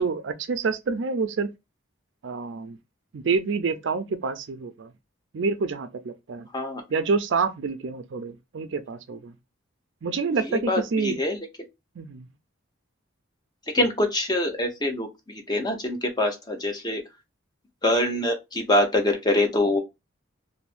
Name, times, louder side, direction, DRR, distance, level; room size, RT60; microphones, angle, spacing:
voice 1, 0.0-1.5 2.2-2.8 3.1-4.9 5.3-6.5 6.9-9.3 10.0-11.2 12.0-12.3, right 4 dB, 60° right, 0.4 m, -27 dB
voice 2, 10.5-11.4 13.7-17.0 17.8-19.8, left 1 dB, 20° left, 0.7 m, -24 dB
2.6 x 2.5 x 3.3 m
head